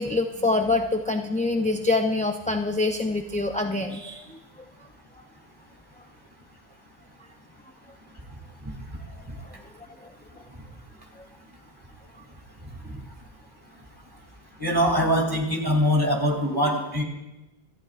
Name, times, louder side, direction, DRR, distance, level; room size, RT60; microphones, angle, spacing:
voice 1, 0.0-4.4, left 3 dB, 10° left, 3 dB, 0.4 m, -25 dB
voice 2, 14.6-17.0, equal, 20° right, 0 dB, 2.7 m, -23 dB
26.5 x 14.5 x 2.5 m, 1.0 s
omnidirectional pair, 1.1 m